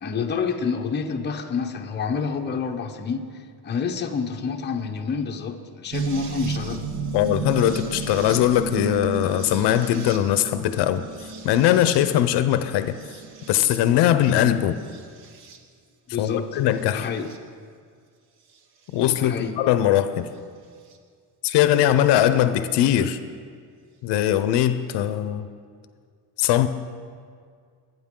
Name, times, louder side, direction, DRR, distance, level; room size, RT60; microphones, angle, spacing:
voice 1, 0.0-3.3 3.6-6.9 16.1-16.5 16.9-17.3 19.1-19.6, left 5 dB, 25° left, 3 dB, 0.8 m, -28 dB
sound 1, 5.9-14.1 14.8-15.6 16.7-17.4 19.1-19.2 20.9-21.0, right 3 dB, 70° right, 1.3 m, -33 dB
voice 2, 7.1-11.1 11.4-13.0 13.5-14.8 16.2-17.1 18.9-20.3 21.4-23.2 24.0-25.4 26.4-26.7, left 11 dB, 80° left, 12 dB, 0.7 m, -20 dB
22.5 x 9.4 x 3.7 m, 2.1 s
cardioid pair, 155°, 40 cm